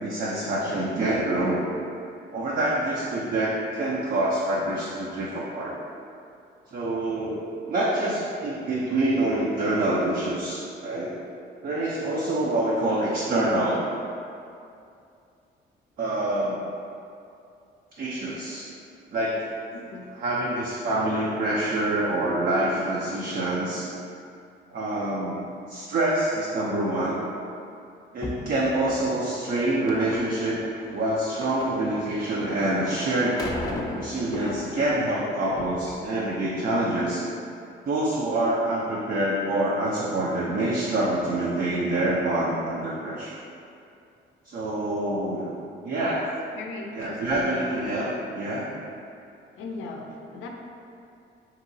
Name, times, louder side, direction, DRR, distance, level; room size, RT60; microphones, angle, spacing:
voice 1, 0.0-1.6 2.3-5.7 6.7-11.2 11.6-13.8 16.0-16.6 18.0-18.7 19.1-19.5 20.1-23.9 24.7-25.4 25.7-27.2 28.1-30.6 30.9-33.4 33.9-37.2 37.8-43.4 44.5-45.5 45.8-46.3 46.9-48.7, right 1 dB, 50° right, -5 dB, 0.5 m, -26 dB
sound 1, 28.2-35.1 35.4-36.0, left 1 dB, 20° left, 0.4 m, -37 dB
voice 2, 46.6-48.0 49.6-50.5, left 3 dB, 80° left, 1 dB, 0.4 m, -38 dB
2.9 x 2.8 x 2.6 m, 2.5 s
cardioid pair, 90°, 20 cm